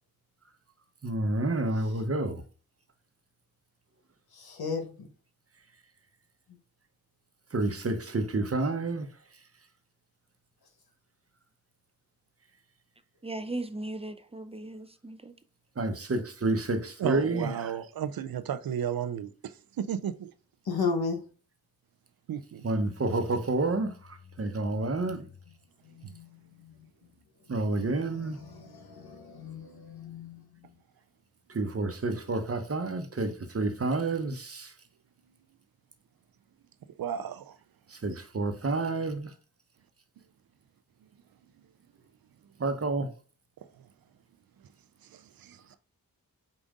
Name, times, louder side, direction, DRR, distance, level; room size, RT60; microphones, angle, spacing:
voice 1, 1.0-2.4 7.5-9.1 15.8-17.5 22.6-25.2 27.5-28.4 31.5-34.7 37.9-39.3 42.6-43.1, right 2 dB, 40° right, 0.9 m, -29 dB
voice 2, 4.4-5.1 20.7-21.2 26.0-26.7 27.7-30.7, left 4 dB, 80° left, 1.1 m, -35 dB
voice 3, 13.2-15.3, right 2 dB, 15° right, 0.4 m, -37 dB
voice 4, 17.0-20.3 22.3-22.6 37.0-37.6 38.1-38.2 43.8-43.9 45.0-45.8, right 9 dB, 70° right, 0.5 m, -34 dB
5.3 x 2.5 x 3.6 m
cardioid pair, 50°, 37 cm